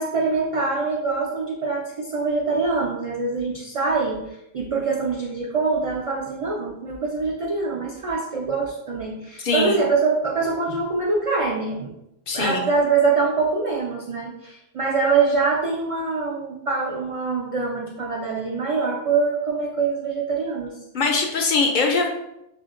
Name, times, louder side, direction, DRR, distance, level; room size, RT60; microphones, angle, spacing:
voice 1, 0.0-11.9 12.3-20.7, right 4 dB, 60° right, -1 dB, 0.3 m, -24 dB
voice 2, 9.4-9.8 12.3-12.7 20.9-22.1, left 4 dB, 60° left, 2 dB, 0.6 m, -22 dB
6.2 x 2.1 x 2.4 m, 0.85 s
omnidirectional pair, 1.1 m